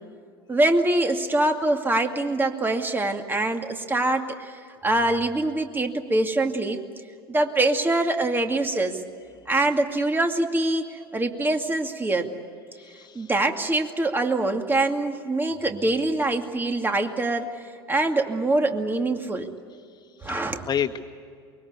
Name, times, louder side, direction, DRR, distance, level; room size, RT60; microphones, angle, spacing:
voice 1, 0.5-6.8 7.3-9.0 9.5-12.3 13.1-19.5 20.2-20.7, right 2 dB, 15° right, 5 dB, 2.3 m, -24 dB
voice 2, 12.7-13.3 20.2-21.0, left 9 dB, 30° left, 8 dB, 1.7 m, -30 dB
24.0 x 23.0 x 8.4 m, 2.3 s
hypercardioid pair, 75°, 13 cm